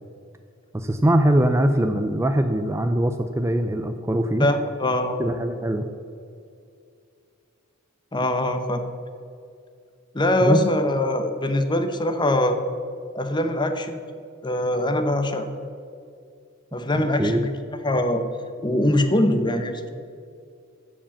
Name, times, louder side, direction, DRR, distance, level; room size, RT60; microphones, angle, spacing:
voice 1, 0.7-4.5 5.2-5.9 10.4-10.7 17.2-17.5, right 1 dB, 15° right, 7 dB, 0.4 m, -22 dB
voice 2, 4.4-5.2 8.1-8.8 10.1-12.6 13.1-14.0 14.4-15.5 16.7-17.5 17.8-18.2 18.6-19.9, left 1 dB, 20° left, 8 dB, 0.8 m, -22 dB
14.5 x 5.0 x 7.0 m, 2.4 s
head